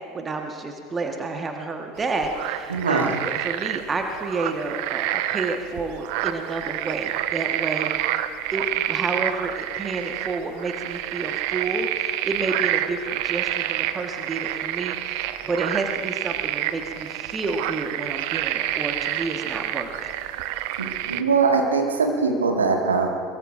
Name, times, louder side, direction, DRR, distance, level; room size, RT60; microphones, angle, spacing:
voice 1, 0.1-8.2 8.5-20.1, right 3 dB, 25° right, 4 dB, 1.5 m, -30 dB
sound 1, 2.0-21.2, right 13 dB, 55° right, 0.7 m, -28 dB
voice 2, 2.7-3.1 20.8-23.1, right 4 dB, 75° right, 1 dB, 2.0 m, -22 dB
22.5 x 22.0 x 2.6 m, 2.2 s
figure-of-eight pair, 70°, 0 cm